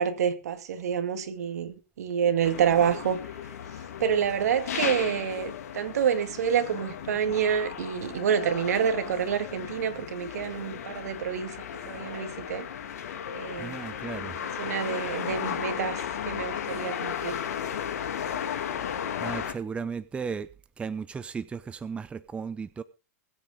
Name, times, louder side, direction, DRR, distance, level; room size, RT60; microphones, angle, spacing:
voice 1, 0.0-3.2 4.0-11.6 11.9-12.7 13.3-13.8 14.6-16.0 16.3-17.4, right 8 dB, 75° right, 2.2 m, -28 dB
sound 1, 2.4-19.5, left 8 dB, 75° left, 2.7 m, -35 dB
voice 2, 13.6-14.4 19.2-20.5 20.8-22.8, right 5 dB, 15° right, 0.7 m, -35 dB
21.5 x 8.4 x 3.8 m
hypercardioid pair, 125°, 9 cm